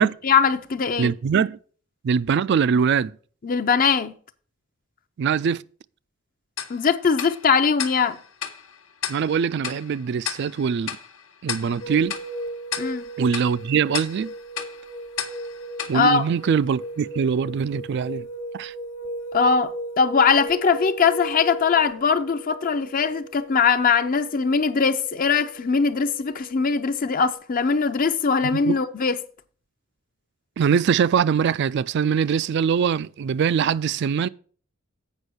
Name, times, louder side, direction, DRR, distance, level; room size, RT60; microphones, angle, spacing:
voice 1, 0.2-1.1 3.4-4.1 6.7-8.2 12.8-13.0 15.9-16.3 19.3-29.2, left 5 dB, 45° left, 0.6 m, -21 dB
voice 2, 1.0-1.6 2.0-3.1 5.2-5.6 9.1-11.0 11.4-12.1 13.2-14.3 15.9-18.3 18.5-18.7 28.5-28.8 30.6-34.3, right 7 dB, 60° right, 0.3 m, -22 dB
Tick-tock, 6.6-17.0, left 9 dB, 90° left, 1.2 m, -36 dB
sound 1, 11.8-27.3, right 1 dB, 70° left, 1.1 m, -37 dB
8.2 x 5.3 x 6.4 m
head